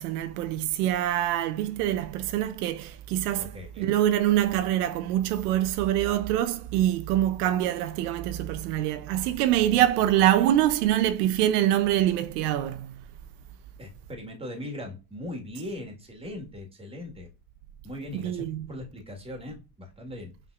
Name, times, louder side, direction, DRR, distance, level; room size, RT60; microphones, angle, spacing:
voice 1, 0.0-13.0 18.1-18.7, right 12 dB, 80° right, 0.7 m, -25 dB
voice 2, 3.4-3.9 13.8-17.3 17.8-20.3, left 1 dB, 10° right, 1.6 m, -39 dB
5.7 x 3.4 x 2.4 m
supercardioid pair, 125°, 46 cm